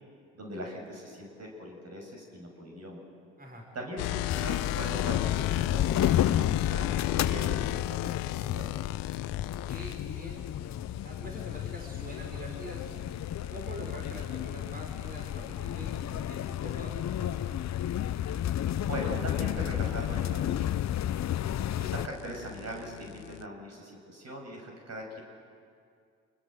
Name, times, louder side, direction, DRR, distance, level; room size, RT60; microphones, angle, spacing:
voice 1, 0.3-3.0 3.7-8.7 18.8-20.7 21.8-25.2, right 1 dB, 50° right, 0 dB, 7.3 m, -41 dB
sound 1, 4.0-10.0 12.4-23.5, left 17 dB, 85° left, 0.6 m, -37 dB
sound 2, 4.3-22.1, left 11 dB, 55° left, 0.8 m, -32 dB
voice 2, 9.7-10.4 11.0-12.9 13.5-17.5, right 1 dB, 25° right, 0 dB, 6.2 m, -44 dB
28.0 x 20.5 x 7.9 m, 2.3 s
supercardioid pair, 55°, 33 cm